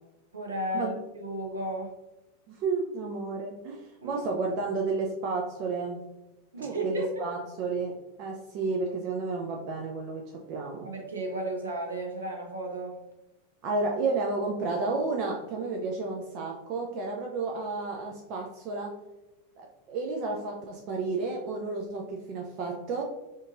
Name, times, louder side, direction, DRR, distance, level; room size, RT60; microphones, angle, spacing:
voice 1, 0.3-1.9 4.0-4.2 6.5-7.2 10.8-12.9, right 1 dB, 70° right, 0 dB, 0.8 m, -33 dB
voice 2, 2.5-6.0 6.6-10.9 13.6-19.0 19.6-23.0, right 3 dB, 40° right, 1 dB, 0.4 m, -32 dB
5.1 x 2.5 x 2.6 m, 1.0 s
figure-of-eight pair, 90°, 0 cm